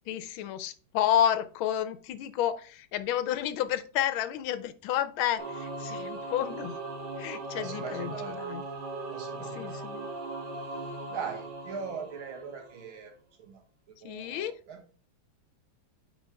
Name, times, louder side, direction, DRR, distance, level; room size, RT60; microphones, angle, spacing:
voice 1, 0.1-6.8 7.2-8.6 9.4-10.1 14.0-14.5, left 10 dB, 85° left, 12 dB, 1.5 m, -30 dB
Singing / Musical instrument, 5.4-12.9, right 2 dB, 60° right, 2.1 m, -38 dB
voice 2, 7.6-8.4 9.1-9.9 11.1-13.1 13.4-13.6 14.0-14.8, right 6 dB, 80° right, 2 dB, 2.2 m, -40 dB
8.7 x 4.5 x 3.4 m, 0.40 s
omnidirectional pair, 2.2 m